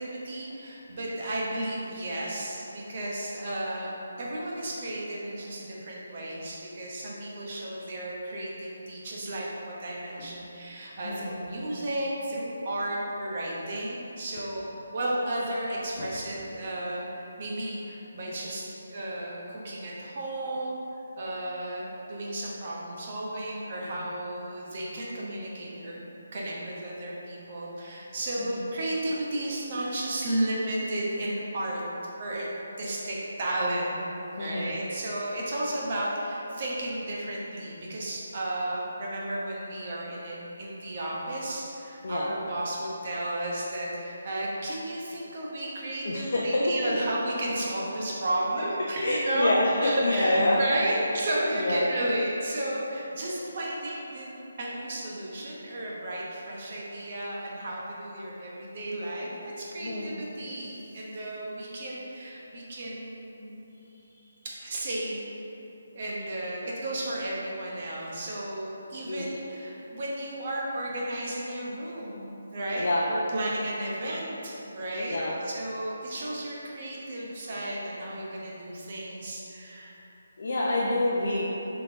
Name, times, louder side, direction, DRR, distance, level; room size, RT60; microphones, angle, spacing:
voice 1, 0.0-3.9 4.2-20.8 21.2-26.0 26.3-31.8 32.2-32.5 32.8-34.0 34.4-63.6 64.4-65.3 65.9-75.2 75.4-80.0, right 1 dB, 45° right, -4 dB, 1.0 m, -33 dB
voice 2, 11.0-11.3 16.0-16.1 28.4-28.6 34.4-34.7 42.0-42.3 46.0-46.9 49.0-50.6 50.9-51.0 51.6-51.9 59.8-60.2 69.0-69.3 72.8-73.1 75.1-75.4 80.4-81.4, left 1 dB, 60° left, -5 dB, 0.6 m, -27 dB
3.9 x 3.4 x 3.9 m, 3.0 s
figure-of-eight pair, 150°, 0 cm